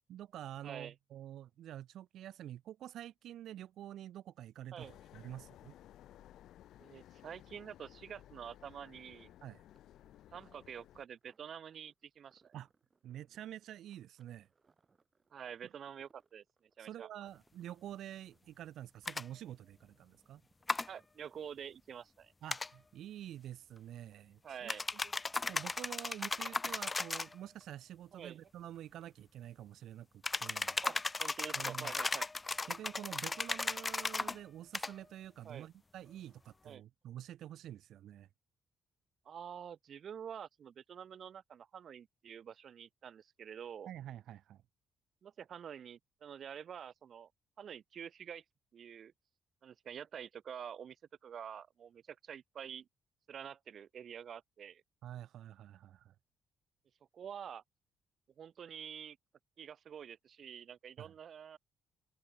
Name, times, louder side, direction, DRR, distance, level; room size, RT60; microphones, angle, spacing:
voice 1, 0.1-5.7 9.4-9.6 12.5-12.7 13.0-14.5 16.8-20.4 22.4-24.7 25.5-30.1 30.4-30.8 31.5-31.9 32.7-38.3 43.9-44.6 55.0-56.1 61.0-61.1, right 12 dB, 75° right, 1.3 m, -48 dB
voice 2, 0.6-0.9 4.7-5.0 6.8-9.3 10.3-12.5 15.3-16.4 16.8-17.1 20.9-22.3 24.4-25.0 28.1-28.4 30.8-32.3 35.4-35.7 36.6-36.8 39.2-43.9 45.2-47.3 47.6-48.4 48.7-49.1 49.6-51.0 51.2-52.9 53.3-54.8 57.1-57.6 58.4-59.2 59.6-61.6, right 8 dB, 55° right, 1.2 m, -48 dB
sound 1, 4.8-11.0, left 12 dB, 80° left, 3.7 m, -58 dB
stressed balloon, 8.0-21.8 22.1-22.2, right 4 dB, 35° right, 6.3 m, -76 dB
sound 2, 19.1-19.2 20.7-20.9 22.5-22.7 24.7-27.3 30.2-34.4 34.7-34.9, left 3 dB, 25° left, 0.6 m, -36 dB
open air
cardioid pair, 90°, 0 cm